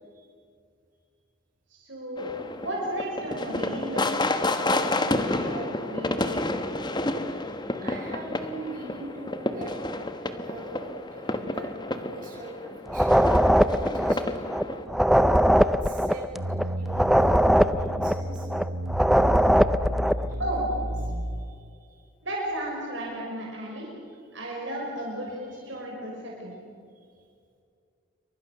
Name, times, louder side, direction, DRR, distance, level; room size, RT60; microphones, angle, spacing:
voice 1, 1.7-6.5 20.4-20.6 22.2-23.9 24.3-26.5, right 1 dB, 65° right, -2 dB, 6.2 m, -34 dB
sound 1, 2.2-14.8, left 2 dB, 20° left, 1.3 m, -30 dB
voice 2, 7.3-9.7 10.2-14.8 15.6-16.2 16.6-18.5 20.0-22.0 25.5-25.7 26.9-27.0, right 2 dB, 40° right, -2 dB, 7.6 m, -43 dB
sound 2, 12.9-20.3, equal, ahead, 0.6 m, -21 dB
sound 3, 16.3-21.8, equal, 85° right, 1.4 m, -32 dB
29.0 x 24.5 x 6.8 m, 2.3 s
head